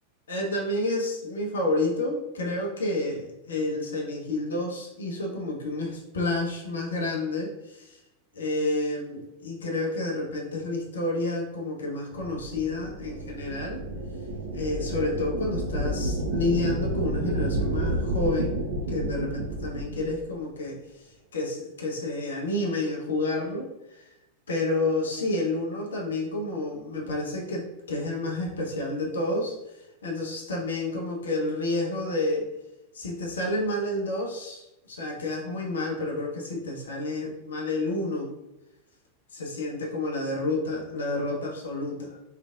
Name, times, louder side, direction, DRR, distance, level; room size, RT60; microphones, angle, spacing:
voice 1, 0.3-8.0 8.3-13.8 14.5-18.6 18.9-23.7 24.5-32.5 32.9-38.3 39.3-42.2, left 2 dB, 65° left, -1 dB, 0.8 m, -30 dB
sound 1, 12.1-20.2, right 1 dB, 70° right, 0.6 m, -30 dB
4.9 x 3.3 x 2.4 m, 0.95 s
figure-of-eight pair, 90°, 0 cm